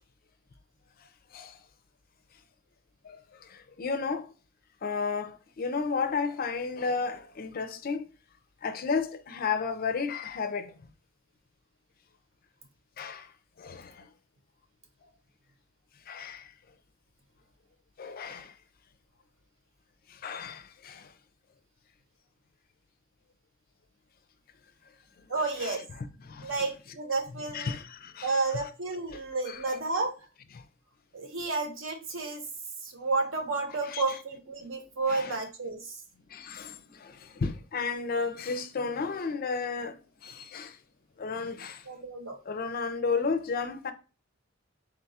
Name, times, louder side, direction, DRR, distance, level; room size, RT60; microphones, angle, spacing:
voice 1, 3.0-4.3 4.8-8.1 8.6-10.7 13.0-13.3 13.6-14.1 16.1-16.5 18.0-18.6 20.1-21.1 25.6-25.8 26.2-26.5 27.5-28.4 29.1-29.2 29.5-29.8 30.5-30.6 33.9-34.2 35.1-35.4 36.3-40.8 41.2-41.9 42.5-43.9, left 5 dB, 45° left, 0.4 m, -33 dB
voice 2, 25.3-25.8 26.4-27.7 28.2-30.1 31.1-32.4 32.8-36.0 41.9-42.4, right 3 dB, 70° right, 1.0 m, -31 dB
3.8 x 2.3 x 4.0 m
head